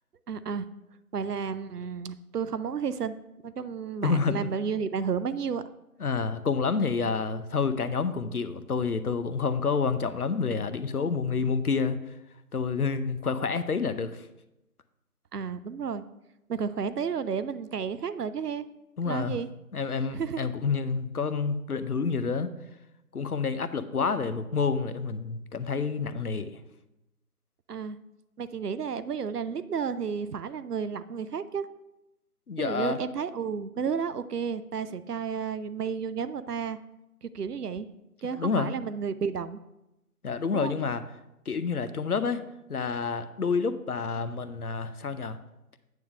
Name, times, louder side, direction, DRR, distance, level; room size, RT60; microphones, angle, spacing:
voice 1, 0.3-0.7 1.1-3.2 3.4-5.7 15.3-16.0 16.5-18.6 19.1-19.5 20.1-20.4 27.7-28.0 28.4-31.7 32.6-36.8 37.2-37.9 38.2-39.6 40.5-40.7, right 6 dB, 80° right, 14 dB, 0.6 m, -32 dB
voice 2, 4.0-4.5 6.0-12.0 12.5-14.3 19.0-19.4 19.7-22.5 23.1-26.6 32.5-33.0 38.3-38.7 40.2-41.0 41.5-42.4 42.7-45.4, left 5 dB, 70° left, 12 dB, 0.7 m, -28 dB
9.2 x 3.6 x 6.4 m, 0.92 s
figure-of-eight pair, 170°, 46 cm